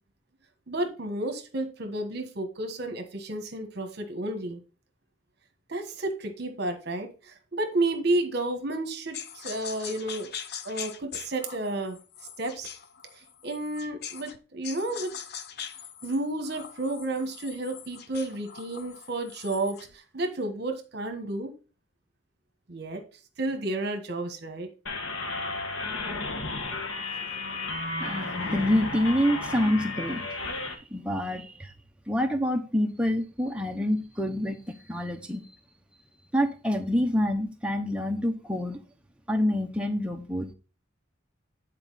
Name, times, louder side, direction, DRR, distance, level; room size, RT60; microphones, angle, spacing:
voice 1, 0.7-4.6 5.7-10.3 10.6-12.0 12.4-12.7 13.2-15.1 16.0-21.5 22.7-23.0 23.4-24.7, right 2 dB, 50° right, 1.2 m, -31 dB
sound 1, 9.1-14.4 14.6-19.9, left 8 dB, 50° left, 0.6 m, -42 dB
sound 2, 24.9-30.7, left 3 dB, 75° left, 1.3 m, -33 dB
voice 2, 28.0-31.7 32.1-35.4 36.3-38.8 39.3-40.5, left 1 dB, 5° right, 0.8 m, -27 dB
9.6 x 4.4 x 4.0 m
head